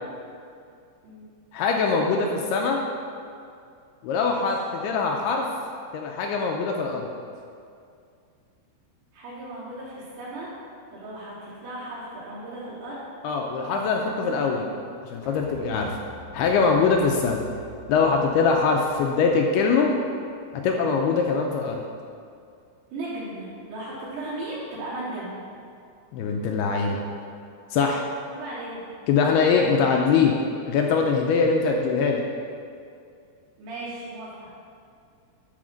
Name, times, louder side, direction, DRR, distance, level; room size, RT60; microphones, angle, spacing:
voice 1, 1.5-2.8 4.0-5.5 5.9-7.1 13.2-14.7 15.1-16.0 16.3-17.4 17.9-19.9 20.6-21.8 26.1-27.0 27.7-28.1 29.1-30.4 30.7-32.2, left 5 dB, 80° left, 1 dB, 2.4 m, -22 dB
voice 2, 9.1-10.5 10.9-13.0 14.0-14.5 22.9-25.3 28.3-28.8 33.6-34.5, right 2 dB, 85° right, -9 dB, 5.0 m, -36 dB
sound 1, 15.2-20.9 21.2-21.3, right 3 dB, 50° right, 2.8 m, -47 dB
11.5 x 4.3 x 6.3 m, 2.4 s
omnidirectional pair, 5.0 m